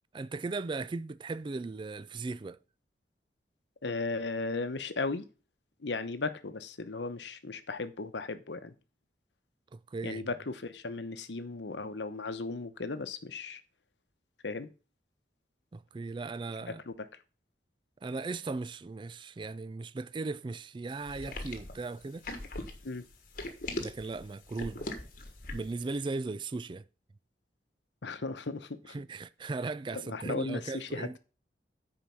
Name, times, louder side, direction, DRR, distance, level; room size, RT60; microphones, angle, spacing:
voice 1, 0.1-2.6 9.7-10.2 15.7-16.8 18.0-22.3 23.8-24.9 25.5-26.8 28.9-31.2, right 3 dB, 25° right, 0.3 m, -37 dB
voice 2, 3.8-5.3 5.8-8.7 10.0-13.6 14.4-14.7 16.7-17.1 22.8-23.0 28.0-28.9 29.9-31.2, left 3 dB, 85° left, 0.9 m, -36 dB
sound 1, 21.1-25.8, left 2 dB, 50° left, 1.4 m, -39 dB
9.3 x 4.8 x 5.7 m
head